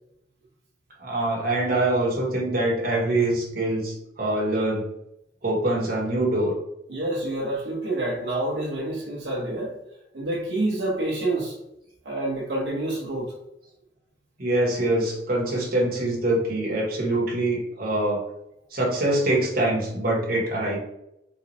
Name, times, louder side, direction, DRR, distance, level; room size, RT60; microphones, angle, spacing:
voice 1, 1.0-4.9 5.4-6.5 14.4-18.2 18.7-20.8, right 1 dB, 55° right, -2 dB, 1.2 m, -24 dB
voice 2, 6.9-9.8 10.1-11.5 12.0-13.3, right 1 dB, 80° right, -4 dB, 0.9 m, -28 dB
3.8 x 3.1 x 2.6 m, 0.83 s
head